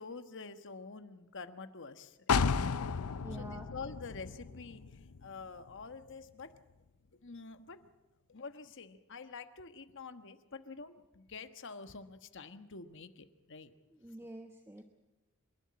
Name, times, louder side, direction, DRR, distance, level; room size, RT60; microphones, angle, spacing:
voice 1, 0.0-2.5 3.4-6.6 7.2-7.9 8.3-13.7, left 4 dB, 55° left, 10 dB, 1.3 m, -47 dB
sound 1, 2.3-6.0 6.4-6.5, left 5 dB, 80° left, 0.6 m, -34 dB
voice 2, 3.2-3.7 13.9-14.8, right 1 dB, 10° right, 5 dB, 1.1 m, -47 dB
27.0 x 12.0 x 9.6 m, 1.1 s
head